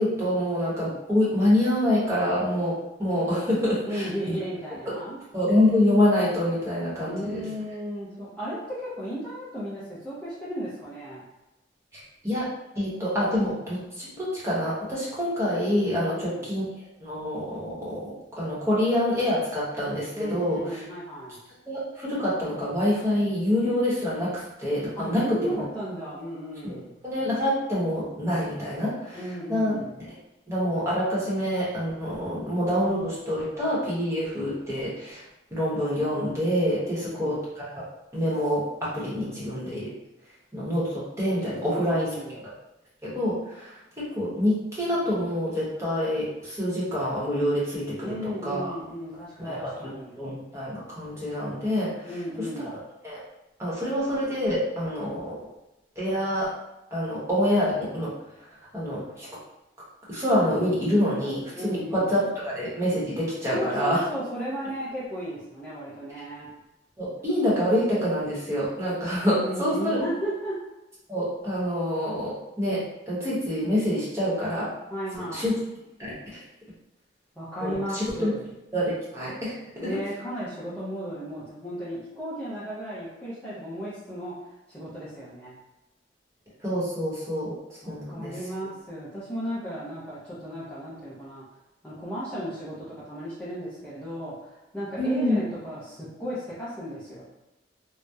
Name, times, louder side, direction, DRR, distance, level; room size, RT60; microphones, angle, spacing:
voice 1, 0.0-4.4 4.9-5.0 5.3-7.4 11.9-12.5 12.7-16.7 17.0-20.8 21.7-25.6 26.6-26.8 27.0-29.2 29.5-30.1 30.5-35.2 35.5-37.7 38.1-39.9 40.5-42.1 43.0-48.1 48.4-48.7 49.4-49.9 50.2-52.1 52.4-52.5 53.0-53.2 53.6-55.4 56.0-56.5 56.9-58.1 58.7-59.3 60.1-64.0 67.0-70.0 71.1-74.7 75.3-75.5 76.0-76.4 77.6-78.3 78.7-79.5 79.8-79.9 86.6-88.3 95.0-95.4, left 1 dB, 15° right, -8 dB, 0.9 m, -26 dB
voice 2, 3.8-5.2 7.0-11.2 15.9-16.5 20.1-21.4 25.0-26.9 29.1-29.9 36.7-37.4 41.5-42.4 48.0-50.2 52.1-52.7 61.5-62.1 63.5-66.5 69.4-70.5 74.9-75.5 77.4-78.4 79.8-84.3 84.7-85.6 87.8-91.4 91.8-97.3, equal, 5° left, -11 dB, 0.5 m, -35 dB
2.8 x 2.0 x 2.2 m, 0.97 s
head